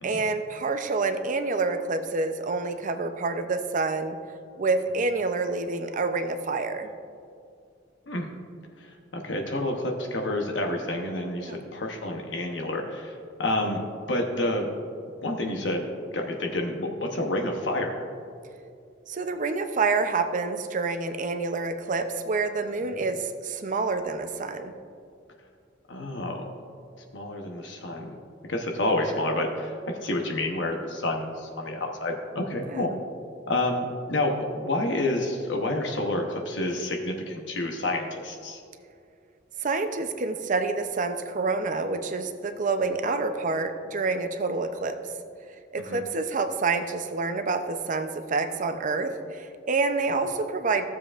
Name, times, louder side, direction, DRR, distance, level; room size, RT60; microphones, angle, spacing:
voice 1, 0.0-4.2 4.6-6.9 11.4-11.7 19.1-24.7 32.7-33.0 39.6-45.0 45.7-50.9, right 3 dB, 45° right, 8 dB, 0.5 m, -28 dB
voice 2, 8.8-13.8 14.1-14.7 15.2-15.9 16.1-18.0 22.9-23.0 25.9-26.4 27.1-28.2 28.5-32.9 33.5-38.6 45.8-46.0, left 1 dB, 70° left, 2 dB, 0.9 m, -29 dB
14.5 x 7.3 x 2.4 m, 2.4 s
head